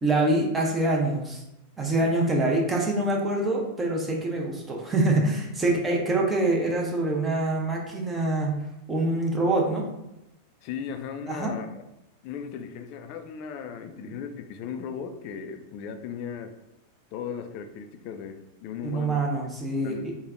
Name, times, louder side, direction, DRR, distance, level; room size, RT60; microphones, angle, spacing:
voice 1, 0.0-1.4 1.8-8.6 8.9-9.9 11.3-11.5 14.0-14.1 18.8-20.1, right 2 dB, 15° right, -1 dB, 0.7 m, -25 dB
voice 2, 10.6-11.8 12.2-16.5 17.1-19.2 19.7-20.2, left 7 dB, 45° left, 8 dB, 0.3 m, -37 dB
3.3 x 2.1 x 3.6 m, 0.88 s
figure-of-eight pair, 90°, 0 cm